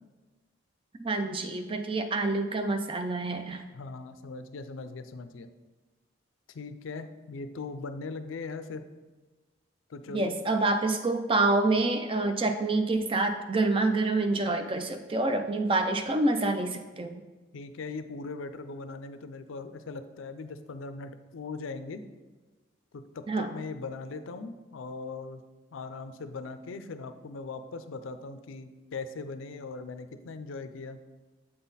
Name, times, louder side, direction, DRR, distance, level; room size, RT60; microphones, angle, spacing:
voice 1, 1.0-3.6 10.1-17.2 23.3-23.5, right 2 dB, 25° right, 7 dB, 0.4 m, -27 dB
voice 2, 3.7-5.5 6.5-8.8 9.9-10.4 17.5-22.0 22.9-25.4 25.7-31.0, left 3 dB, 80° left, 10 dB, 0.4 m, -40 dB
7.7 x 4.0 x 4.0 m, 1.2 s
head